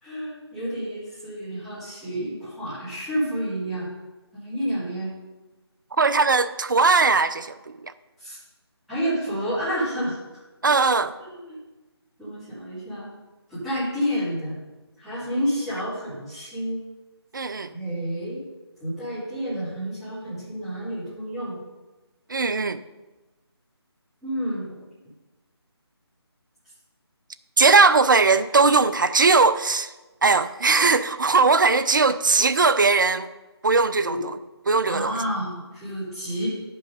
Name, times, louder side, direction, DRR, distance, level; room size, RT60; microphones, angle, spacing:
voice 1, 0.0-3.9 4.3-5.1 8.2-8.4 8.9-10.1 11.2-11.6 12.2-13.1 13.5-14.5 15.0-16.8 17.7-18.4 18.8-21.6 24.2-24.8 34.0-34.2 34.9-36.5, equal, ahead, 2.9 m, -29 dB
voice 2, 6.0-7.7 10.6-11.1 17.3-17.7 22.3-22.8 27.6-29.9 30.2-33.3 33.6-34.4 34.7-35.2, right 4 dB, 45° right, 0.4 m, -19 dB
9.9 x 5.4 x 5.3 m
figure-of-eight pair, 155°, 14 cm